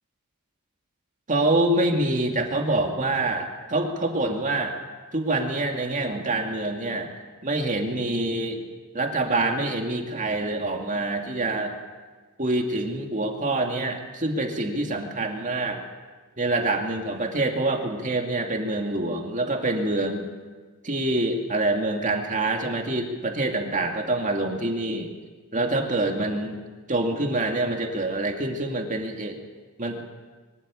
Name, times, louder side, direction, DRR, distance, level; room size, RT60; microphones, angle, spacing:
voice 1, 1.3-4.8 5.1-7.1 7.4-8.7 8.9-11.7 12.4-15.8 16.4-20.3 20.8-25.1 25.5-26.6 26.9-29.4 29.8-30.0, right 2 dB, 35° right, 2 dB, 2.4 m, -26 dB
23.0 x 13.5 x 8.9 m, 1.4 s
head